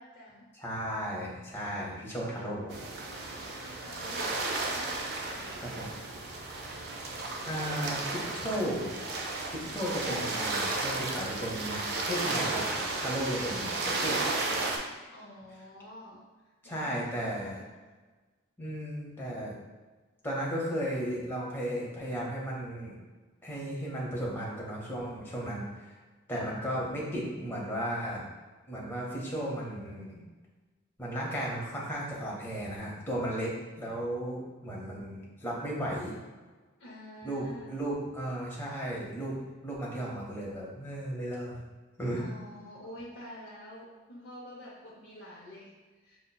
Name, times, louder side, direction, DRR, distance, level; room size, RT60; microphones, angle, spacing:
voice 1, 0.0-0.5 3.3-5.8 14.9-16.2 16.6-17.7 26.3-26.6 36.8-37.7 42.2-46.2, equal, 70° left, -7 dB, 0.7 m, -48 dB
voice 2, 0.6-2.7 5.6-5.9 7.5-8.9 9.5-12.6 13.0-14.2 16.6-17.6 18.6-19.6 20.2-23.0 23.4-26.0 26.3-28.2 28.7-30.2 31.0-33.5 33.8-36.1 37.2-41.6 42.0-42.2, equal, 10° left, -5 dB, 0.7 m, -35 dB
sound 1, 2.7-14.8, right 3 dB, 55° right, 0.4 m, -33 dB
5.4 x 2.1 x 2.2 m, 1.3 s
head